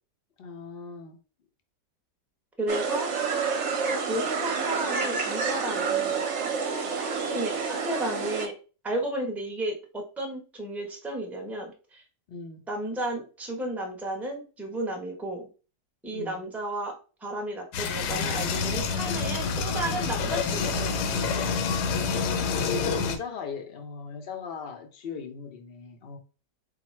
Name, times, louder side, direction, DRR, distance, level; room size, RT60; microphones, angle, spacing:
voice 1, 0.4-1.2 12.3-12.6 16.1-16.4 22.3-26.2, left 5 dB, 60° left, 0.6 m, -39 dB
voice 2, 2.6-3.1 4.0-6.2 7.0-8.5 8.8-12.0 12.7-15.5 16.0-16.9 17.2-21.6, right 1 dB, ahead, 0.6 m, -33 dB
sound 1, 2.7-8.5, right 5 dB, 55° right, 0.9 m, -28 dB
sound 2, 17.7-23.2, left 5 dB, 80° left, 1.2 m, -27 dB
4.0 x 2.2 x 4.3 m
omnidirectional pair, 1.8 m